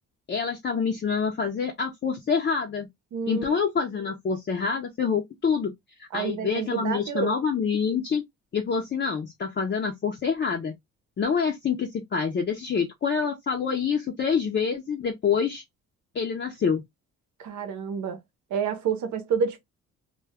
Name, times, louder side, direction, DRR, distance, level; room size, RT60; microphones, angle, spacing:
voice 1, 0.3-2.9 3.3-5.7 6.1-8.2 8.5-10.7 11.2-15.6 16.1-16.8, left 6 dB, 35° left, 0.6 m, -26 dB
voice 2, 3.1-3.5 6.1-7.3 17.4-18.2 18.5-19.6, right 6 dB, 70° right, 0.8 m, -29 dB
2.3 x 2.2 x 3.4 m
cardioid pair, 90°, 30 cm